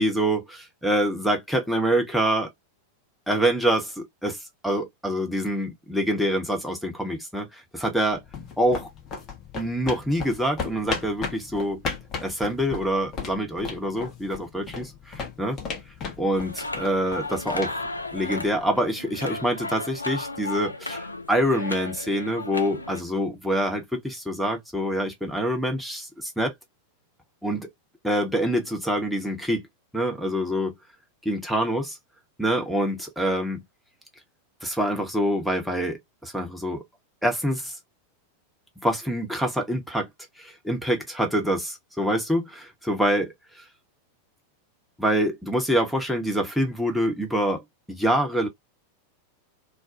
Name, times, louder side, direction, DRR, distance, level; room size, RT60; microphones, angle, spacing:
voice 1, 0.0-2.5 3.3-8.2 8.6-8.9 9.5-11.8 12.2-15.6 16.2-17.9 18.1-26.5 27.4-27.7 28.0-29.7 29.9-30.7 31.2-32.0 32.4-33.6 34.6-36.8 37.2-37.8 38.8-40.1 40.4-43.6 45.0-47.6 47.9-48.5, equal, ahead, 0.9 m, -26 dB
sound 1, 8.1-18.7, left 5 dB, 30° left, 0.8 m, -36 dB
sound 2, 16.3-23.0, left 2 dB, 80° left, 0.4 m, -34 dB
2.4 x 2.2 x 2.6 m
figure-of-eight pair, 90°, 0 cm